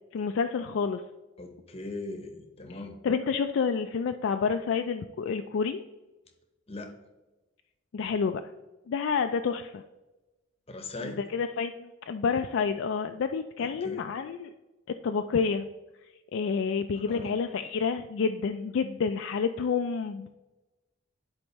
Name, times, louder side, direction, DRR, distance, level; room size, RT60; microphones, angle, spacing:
voice 1, 0.1-1.0 3.0-5.8 7.9-8.4 8.9-9.8 11.0-14.5 15.0-15.7 16.3-20.3, left 5 dB, 60° left, 7 dB, 0.3 m, -29 dB
voice 2, 1.4-3.0 6.7-6.9 10.7-11.2 13.6-14.0 16.9-17.3, left 2 dB, 30° left, 6 dB, 0.8 m, -39 dB
10.5 x 4.4 x 3.0 m, 1.1 s
head